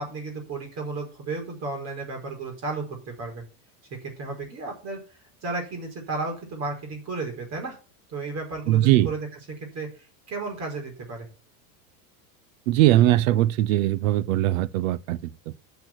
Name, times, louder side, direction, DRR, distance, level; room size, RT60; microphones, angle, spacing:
voice 1, 0.0-3.4 3.9-5.0 5.4-7.8 8.1-9.2 9.6-11.3, right 3 dB, 40° right, 4.9 m, -33 dB
voice 2, 8.7-9.1 12.7-15.5, right 14 dB, 70° right, 0.8 m, -21 dB
9.0 x 6.3 x 6.3 m
supercardioid pair, 130°, 42 cm